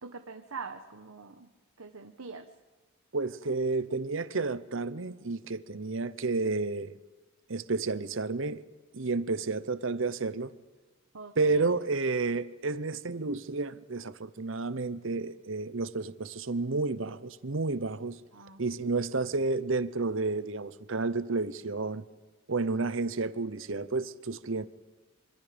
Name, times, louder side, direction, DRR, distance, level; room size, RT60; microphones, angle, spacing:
voice 1, 0.0-1.5 1.8-2.5 11.1-11.7 18.3-18.6, right 4 dB, 85° right, 1.3 m, -43 dB
voice 2, 3.1-6.9 7.5-8.6 8.9-10.5 11.4-18.2 18.6-22.0 22.5-24.7, right 3 dB, 65° right, 0.9 m, -31 dB
25.5 x 25.5 x 5.2 m
head